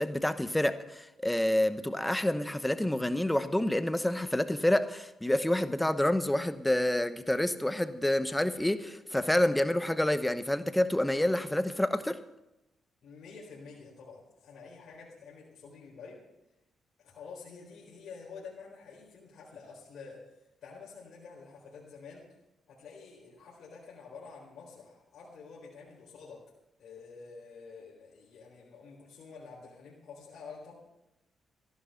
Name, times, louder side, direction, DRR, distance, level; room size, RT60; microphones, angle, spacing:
voice 1, 0.0-12.2, left 1 dB, 10° left, 11 dB, 0.9 m, -28 dB
voice 2, 13.0-16.2 17.0-22.3 22.7-26.5 26.8-30.7, left 5 dB, 70° left, -4 dB, 4.0 m, -49 dB
14.5 x 11.5 x 5.8 m, 0.93 s
cardioid pair, 80°, 0 cm